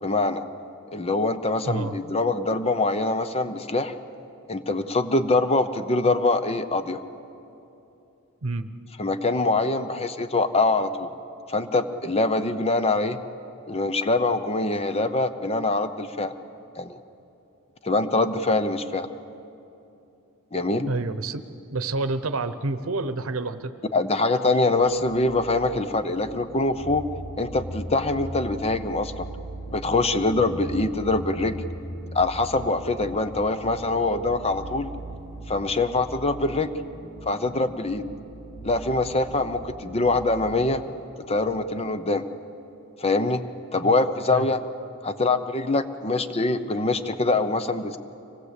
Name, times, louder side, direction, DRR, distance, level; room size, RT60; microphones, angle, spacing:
voice 1, 0.0-0.4 0.9-3.9 4.5-7.0 9.0-11.1 11.5-13.2 13.7-16.3 16.8-17.0 17.8-19.1 20.5-20.9 23.9-27.1 27.4-29.3 29.7-31.7 32.1-34.9 35.5-36.7 37.3-38.0 38.6-40.8 41.3-42.2 43.0-43.4 43.7-44.6 45.0-48.0, left 2 dB, 25° left, 10 dB, 0.7 m, -24 dB
voice 2, 20.9-23.7 43.8-44.0 44.3-44.5, right 3 dB, 65° right, 12 dB, 0.9 m, -29 dB
sound 1, 24.8-40.5, right 1 dB, 80° left, 5.4 m, -39 dB
24.5 x 18.0 x 8.2 m, 2.8 s
head